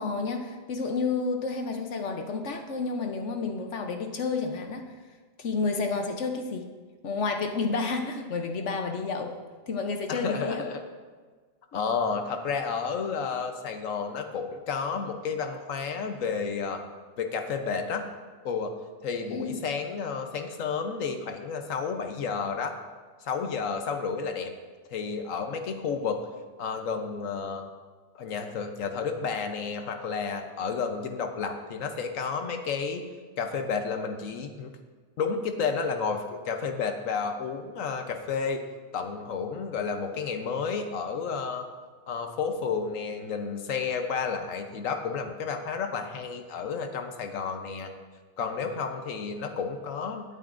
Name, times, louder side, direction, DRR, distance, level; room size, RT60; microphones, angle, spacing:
voice 1, 0.0-4.9 5.4-6.7 7.0-9.3 9.7-10.6 19.3-19.6, left 4 dB, 70° left, 4 dB, 1.1 m, -30 dB
voice 2, 10.1-10.9 11.7-16.8 17.2-18.1 18.4-18.7 19.0-22.8 23.2-24.5 24.9-26.2 26.6-27.6 28.1-33.1 33.4-34.7 35.2-38.6 38.9-41.7 42.1-47.9 48.4-50.2, left 5 dB, 85° left, 5 dB, 1.2 m, -31 dB
17.0 x 9.3 x 2.6 m, 1.5 s
omnidirectional pair, 1.3 m